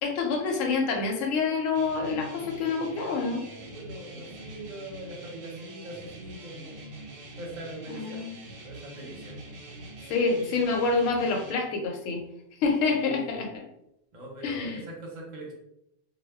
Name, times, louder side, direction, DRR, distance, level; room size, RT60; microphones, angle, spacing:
voice 1, 0.0-3.4 7.9-8.3 10.1-12.2 12.6-13.6 14.4-14.8, left 4 dB, 80° left, 2 dB, 0.9 m, -27 dB
sound 1, 1.7-11.5, right 1 dB, 90° right, 1.0 m, -44 dB
voice 2, 3.6-6.8 7.4-8.2 8.6-9.4 12.8-13.4 14.1-15.5, right 1 dB, 45° right, -1 dB, 0.7 m, -42 dB
2.2 x 2.1 x 3.3 m, 0.81 s
omnidirectional pair, 1.3 m